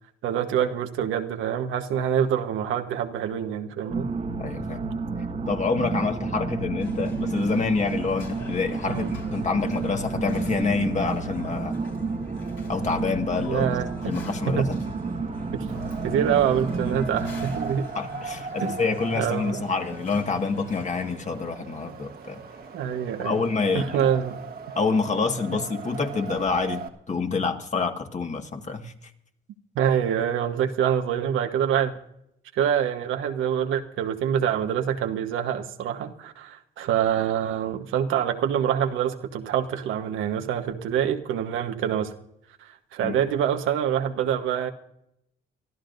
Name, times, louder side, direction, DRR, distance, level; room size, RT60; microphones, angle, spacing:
voice 1, 0.2-4.1 8.9-9.1 13.5-14.1 14.5-14.7 16.0-17.9 18.6-18.8 19.2-19.6 22.7-23.4 23.7-24.4 29.7-31.9 32.5-42.1 42.6-44.7, right 9 dB, 85° right, 6 dB, 1.3 m, -25 dB
sound 1, 3.9-17.7, right 3 dB, 35° right, 1.4 m, -31 dB
voice 2, 4.4-4.8 5.5-11.8 12.7-13.7 14.0-14.8 17.9-22.4 23.2-24.1 24.8-28.9 43.0-43.2, left 4 dB, 35° left, 4 dB, 1.8 m, -27 dB
sound 2, 6.8-21.1, left 4 dB, 70° left, 4.1 m, -45 dB
Wind, 15.7-26.9, right 5 dB, 50° right, 1.5 m, -39 dB
25.0 x 14.0 x 2.6 m, 0.77 s
cardioid pair, 90°, 20 cm